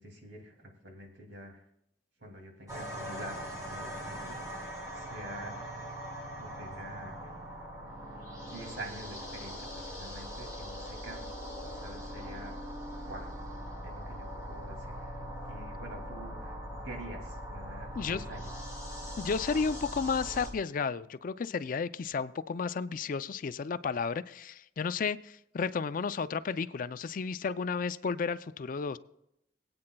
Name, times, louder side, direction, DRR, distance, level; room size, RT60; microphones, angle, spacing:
voice 1, 0.0-1.6 2.2-3.3 3.7-4.4 4.9-5.6 6.4-7.3 8.5-11.3 11.6-12.5 13.1-13.3 13.8-16.6 16.8-18.5, right 1 dB, 85° right, 2.5 m, -46 dB
sound 1, 2.7-20.5, equal, 20° right, 2.8 m, -41 dB
voice 2, 19.2-29.0, left 5 dB, 50° left, 0.4 m, -32 dB
22.0 x 8.7 x 2.3 m
head